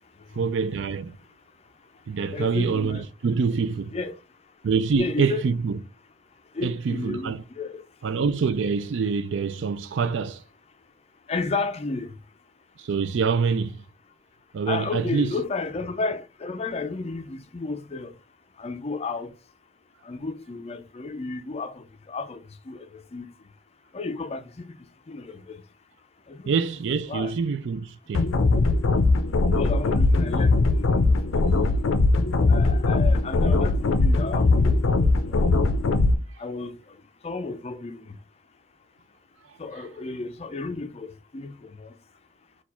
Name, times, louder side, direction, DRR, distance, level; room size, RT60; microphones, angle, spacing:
voice 1, 0.3-1.2 2.1-4.0 4.6-5.8 6.6-7.4 8.0-10.4 12.8-13.8 14.5-15.3 26.5-28.3, right 5 dB, 70° right, 0.4 m, -25 dB
voice 2, 2.3-3.0 3.9-4.2 5.0-5.5 6.5-7.8 11.3-12.1 14.7-18.2 18.6-19.3 20.0-23.3 23.9-24.6 25.1-25.6 26.3-26.5 27.1-27.3 29.5-31.5 32.5-35.5 36.4-37.0 37.2-38.2 39.6-41.9, left 3 dB, 30° left, 0.4 m, -33 dB
sound 1, 28.1-36.1, left 3 dB, 90° left, 0.5 m, -20 dB
4.5 x 2.3 x 4.2 m
head